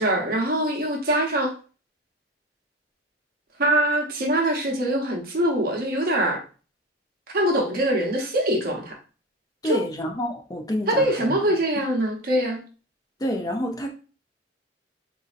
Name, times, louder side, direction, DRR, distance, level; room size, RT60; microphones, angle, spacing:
voice 1, 0.0-1.5 3.6-6.4 7.3-9.0 9.6-9.8 10.9-12.6, right 1 dB, 55° right, 0.9 m, -23 dB
voice 2, 9.6-11.4 13.2-13.9, equal, 20° left, 0.5 m, -28 dB
4.1 x 2.6 x 2.4 m
head